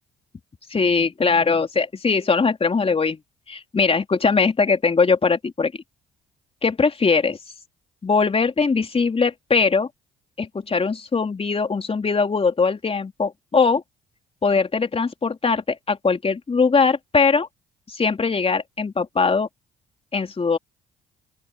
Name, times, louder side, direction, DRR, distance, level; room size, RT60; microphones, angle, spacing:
voice 1, 0.7-3.2 3.5-5.7 6.6-7.4 8.0-9.9 10.4-13.8 14.4-17.5 17.9-19.5 20.1-20.6, left 4 dB, 30° left, 3.6 m, -21 dB
open air
hypercardioid pair, 55°, 18 cm